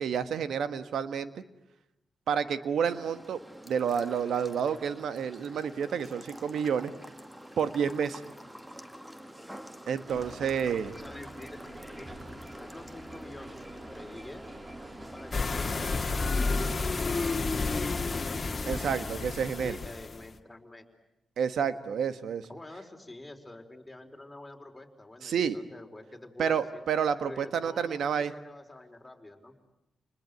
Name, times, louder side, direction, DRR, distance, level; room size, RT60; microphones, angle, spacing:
voice 1, 0.0-1.4 2.3-3.4 3.6-6.9 7.6-8.2 9.9-10.9 18.7-19.8 21.4-22.5 25.2-25.6 26.4-28.3, right 7 dB, 75° right, 12 dB, 1.4 m, -29 dB
sound 1, 2.8-16.0, equal, 10° right, 2.0 m, -48 dB
sound 2, 10.1-16.8, right 1 dB, 30° right, 3.8 m, -46 dB
voice 2, 10.9-12.1 12.6-14.5 15.1-15.9 16.2-19.1 19.6-20.8 22.5-26.8 27.2-29.5, left 1 dB, 15° left, 3 dB, 4.6 m, -47 dB
sound 3, 15.3-20.3, left 3 dB, 40° left, 1.9 m, -30 dB
29.0 x 21.0 x 9.9 m, 0.88 s
supercardioid pair, 55°, 0 cm